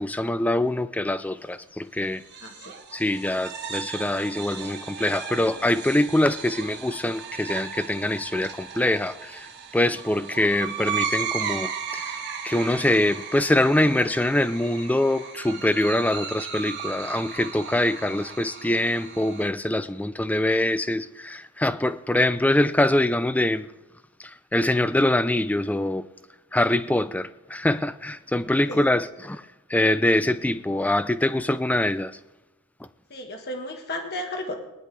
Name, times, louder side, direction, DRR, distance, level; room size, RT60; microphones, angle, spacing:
voice 1, 0.0-2.2 2.9-12.2 12.4-23.7 24.2-26.1 26.5-29.4 29.7-32.2, left 1 dB, 5° left, 0.3 m, -24 dB
sound 1, 2.2-19.5, right 6 dB, 50° right, 1.4 m, -35 dB
voice 2, 2.4-2.7 28.7-28.8 33.1-34.5, left 1 dB, 45° left, 1.5 m, -33 dB
20.5 x 10.0 x 3.4 m
head